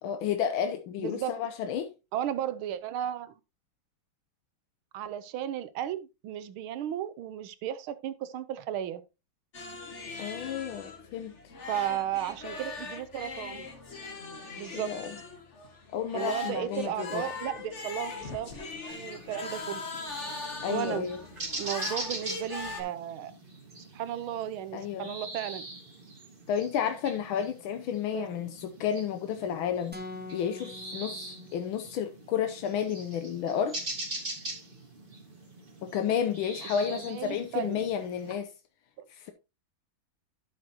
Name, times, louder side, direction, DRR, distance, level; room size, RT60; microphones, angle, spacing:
voice 1, 0.0-1.9 10.2-11.4 14.7-15.2 15.9-17.2 20.6-21.2 24.7-25.1 26.5-30.0 30.3-33.8 35.8-38.5 39.1-39.3, left 8 dB, 85° left, 1.6 m, -31 dB
voice 2, 1.0-1.3 2.1-3.3 4.9-9.0 11.7-13.7 14.6-14.9 16.1-19.8 20.7-21.1 21.6-23.3 23.9-25.7 28.1-28.3 36.6-37.8 39.0-39.1, right 11 dB, 85° right, 1.6 m, -34 dB
sound 1, 9.5-22.8, left 4 dB, 35° left, 1.6 m, -40 dB
sound 2, 18.9-38.3, right 2 dB, 25° right, 2.2 m, -42 dB
sound 3, 29.9-32.0, left 2 dB, 5° right, 0.8 m, -44 dB
12.0 x 6.4 x 2.9 m
omnidirectional pair, 2.2 m